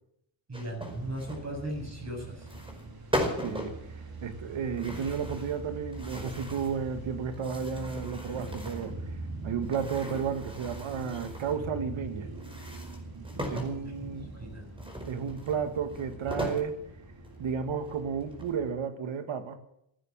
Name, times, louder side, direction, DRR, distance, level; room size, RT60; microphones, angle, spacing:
sound 1, 0.5-1.4 2.4-2.8 3.1-3.8 4.8-5.6 5.9-6.8 7.3-8.9 9.6-11.6 12.3-13.8 14.8-16.7 17.2-17.3 17.8-18.6, equal, 10° right, 5.0 m, -38 dB
voice 1, 0.5-2.5 14.3-14.7, right 1 dB, 35° right, 2 dB, 7.9 m, -37 dB
sound 2, 0.8-18.7, right 2 dB, 50° right, 4.6 m, -43 dB
voice 2, 3.4-3.8 4.2-9.0 9.4-12.3 13.5-14.3 15.1-16.8 17.4-19.6, right 6 dB, 80° right, 9 dB, 2.0 m, -32 dB
16.5 x 9.6 x 8.9 m, 0.76 s
cardioid pair, 90°, 46 cm